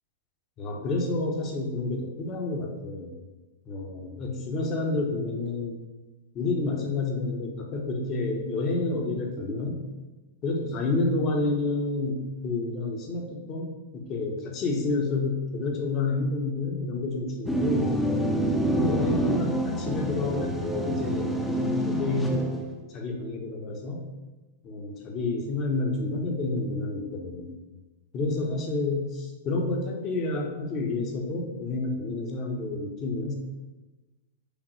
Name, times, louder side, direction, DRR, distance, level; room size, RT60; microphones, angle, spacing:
voice 1, 0.6-3.1 3.7-5.8 6.3-9.9 10.4-18.0 18.7-22.5 22.9-24.1 24.6-27.5 28.1-33.3, left 3 dB, 35° left, 1 dB, 0.8 m, -29 dB
sound 1, 17.5-22.7, right 1 dB, 5° left, 0.6 m, -27 dB
5.0 x 2.6 x 3.1 m, 1.2 s
hypercardioid pair, 120°, 0 cm